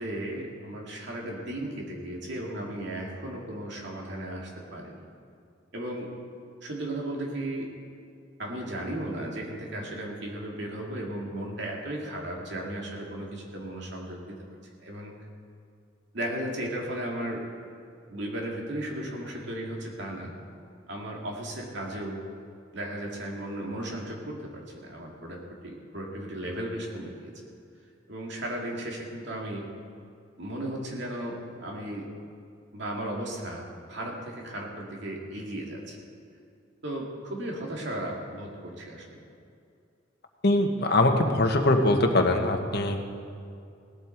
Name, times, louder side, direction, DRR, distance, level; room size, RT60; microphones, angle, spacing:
voice 1, 0.0-5.1 5.7-6.1 6.6-7.7 8.4-14.3 14.8-15.1 16.1-17.4 18.1-20.3 20.9-22.2 22.7-27.3 28.1-29.7 30.4-32.1 32.7-36.0 36.8-39.2, right 1 dB, 60° right, -1 dB, 2.5 m, -35 dB
voice 2, 40.4-43.0, left 2 dB, 55° left, 3 dB, 1.4 m, -22 dB
17.5 x 12.0 x 4.6 m, 2.4 s
head